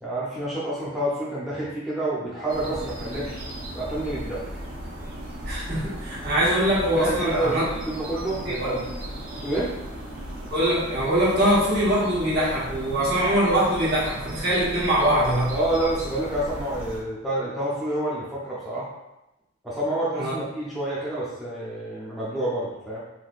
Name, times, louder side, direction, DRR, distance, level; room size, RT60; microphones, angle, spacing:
voice 1, 0.0-3.4 3.7-4.4 7.0-8.9 9.4-9.7 15.5-18.9 19.6-23.0, right 1 dB, ahead, -8 dB, 0.6 m, -28 dB
sound 1, 2.5-17.0, equal, 75° right, 0.8 m, -36 dB
voice 2, 5.4-7.6 8.4-8.7 10.5-15.5 20.2-20.3, right 1 dB, 50° right, -9 dB, 1.3 m, -23 dB
4.0 x 2.6 x 2.5 m, 0.95 s
head